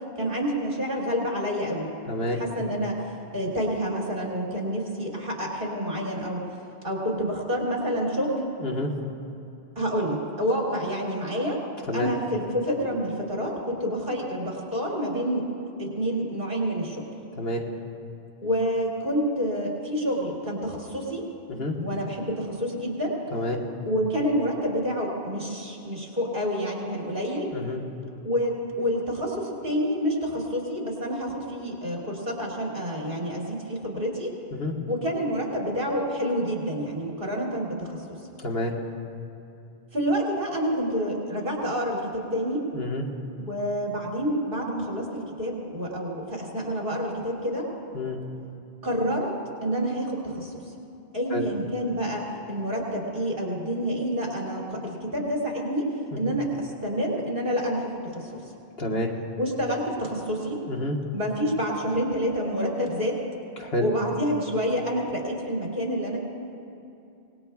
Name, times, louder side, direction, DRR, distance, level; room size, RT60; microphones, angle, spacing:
voice 1, 0.2-1.9 2.3-2.9 3.3-6.4 6.8-8.5 9.7-11.6 11.9-15.4 15.8-17.0 18.4-21.2 21.8-23.1 23.8-27.5 28.2-34.3 34.9-38.0 39.9-42.6 43.4-47.7 48.8-49.3 49.6-50.5 51.1-55.8 56.2-58.3 59.4-60.6 61.1-63.2 63.8-66.2, equal, 55° right, -3 dB, 3.2 m, -28 dB
voice 2, 2.1-2.4 8.6-8.9 11.9-12.1 17.4-17.6 21.5-21.7 23.3-23.6 27.5-27.8 34.5-34.7 38.4-38.7 42.7-43.0 47.9-48.2 51.3-51.4 58.8-59.1 60.7-60.9 63.6-63.8, left 1 dB, 70° left, -1 dB, 1.7 m, -28 dB
25.0 x 19.5 x 2.4 m, 2.7 s
omnidirectional pair, 1.1 m